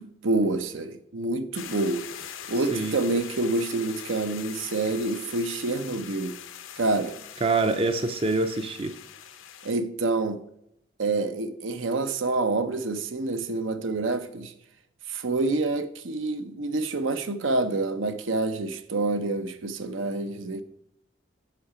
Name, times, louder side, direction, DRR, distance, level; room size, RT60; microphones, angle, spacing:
voice 1, 0.0-2.0 2.5-6.4 6.8-7.2 9.6-10.4 11.0-14.5 15.1-20.6, right 2 dB, 85° right, 0.7 m, -27 dB
sound 1, 1.5-9.7, left 9 dB, 90° left, 0.7 m, -42 dB
voice 2, 7.4-8.9, right 3 dB, 30° right, 0.5 m, -25 dB
8.3 x 5.7 x 4.9 m
head